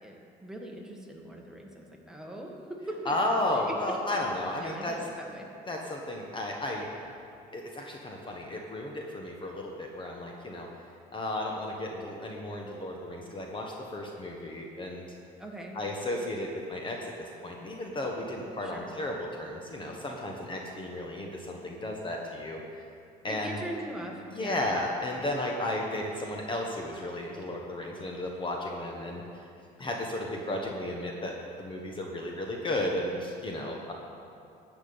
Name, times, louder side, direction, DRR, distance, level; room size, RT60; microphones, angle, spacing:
voice 1, 0.0-3.7 4.6-5.5 15.4-15.8 18.6-18.9 23.2-24.6, right 1 dB, 5° right, -1 dB, 1.8 m, -41 dB
voice 2, 3.0-5.0 5.7-6.9 7.5-10.7 11.1-15.1 15.7-22.6 23.2-23.6 24.3-29.2 29.8-33.9, left 1 dB, 30° left, 0 dB, 1.3 m, -34 dB
13.5 x 6.0 x 8.8 m, 2.6 s
cardioid pair, 110°, 17 cm